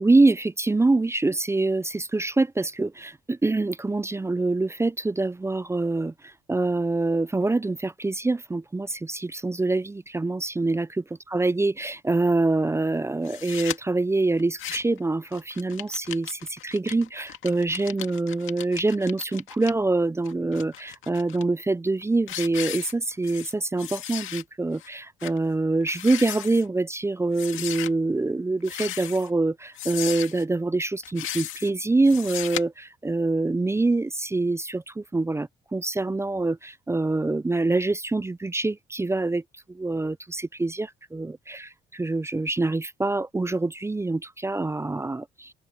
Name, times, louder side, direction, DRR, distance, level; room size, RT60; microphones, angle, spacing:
voice 1, 0.0-39.4 39.7-45.5, right 2 dB, 15° right, 0.5 m, -25 dB
sound 1, 13.2-13.8 14.4-15.0 15.3-19.7 20.2-21.4 21.9-22.0 22.3-23.5 23.8-24.4 24.8-24.9 25.2-25.4 25.8-26.6 27.3-27.9 28.6-29.3 29.7-30.4 31.0-31.7 32.0-32.6, left 12 dB, 85° left, 2.0 m, -36 dB
open air
cardioid pair, 90°, 20 cm